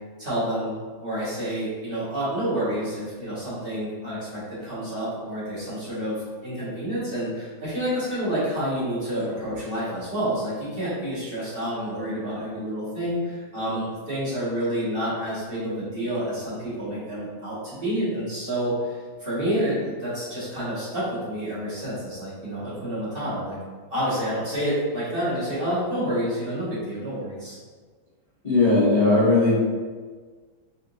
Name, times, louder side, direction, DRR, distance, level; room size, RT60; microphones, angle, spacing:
voice 1, 0.2-0.7 1.0-23.6 23.9-27.6, equal, 30° right, -12 dB, 1.6 m, -29 dB
voice 2, 28.4-29.5, left 2 dB, 30° left, -11 dB, 0.7 m, -18 dB
4.3 x 3.7 x 2.6 m, 1.5 s
omnidirectional pair, 2.1 m